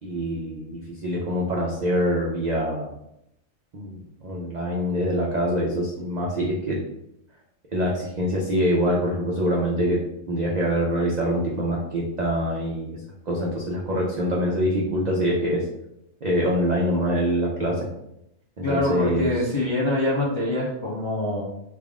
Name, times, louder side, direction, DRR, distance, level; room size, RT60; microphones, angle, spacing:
voice 1, 0.0-2.9 3.7-6.8 7.7-10.0 10.3-13.0 13.3-15.7 16.2-17.9 18.6-19.3, equal, 65° right, -3 dB, 0.4 m, -24 dB
voice 2, 18.6-21.4, left 1 dB, 40° left, -6 dB, 0.4 m, -25 dB
3.4 x 2.4 x 3.5 m, 0.81 s
omnidirectional pair, 1.4 m